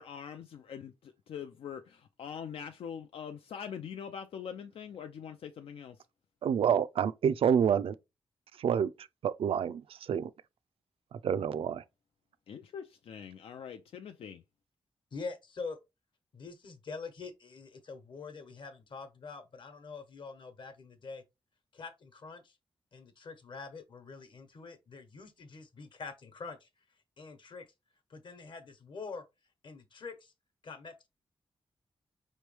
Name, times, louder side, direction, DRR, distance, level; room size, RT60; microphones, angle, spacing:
voice 1, 0.0-6.0 12.5-14.4, left 7 dB, 90° left, 0.4 m, -43 dB
voice 2, 6.4-7.9 8.6-8.9 9.2-10.3 11.2-11.8, right 8 dB, 85° right, 0.4 m, -28 dB
voice 3, 15.1-15.8 16.3-21.2 21.7-22.5 22.9-26.7 27.2-27.6 28.1-29.2 29.6-30.1 30.6-31.1, left 4 dB, 60° left, 1.1 m, -45 dB
5.2 x 3.1 x 3.3 m
wide cardioid pair, 140°, 9 cm